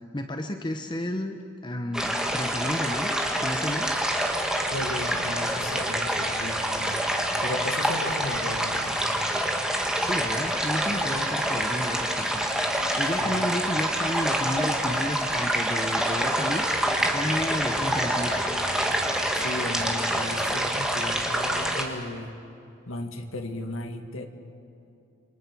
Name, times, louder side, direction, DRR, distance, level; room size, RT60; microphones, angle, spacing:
voice 1, 0.1-3.9 10.0-12.5 13.0-16.6 17.1-18.4, left 1 dB, 20° left, 6 dB, 0.9 m, -32 dB
sound 1, 1.9-21.8, right 1 dB, 5° right, 1.7 m, -26 dB
voice 2, 4.7-7.1 7.4-9.0 13.2-13.4 17.3-17.4 19.3-22.3 22.9-24.3, left 1 dB, 70° left, 5 dB, 2.1 m, -35 dB
29.0 x 22.5 x 6.1 m, 2.6 s
head